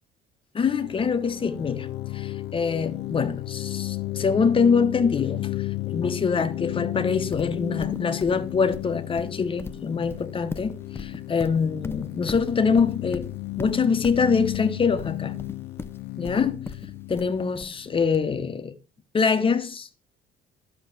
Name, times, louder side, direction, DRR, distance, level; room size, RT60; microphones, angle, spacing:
voice 1, 0.5-1.9 2.1-15.4 16.2-16.8 17.1-18.8 19.1-19.9, left 5 dB, 30° left, 1.1 m, -24 dB
sound 1, 0.6-18.2, left 18 dB, 75° left, 0.5 m, -34 dB
Livestock farm animals working animals, 7.3-18.1, left 3 dB, 15° left, 0.6 m, -39 dB
11.5 x 6.5 x 6.9 m
cardioid pair, 110°, 17 cm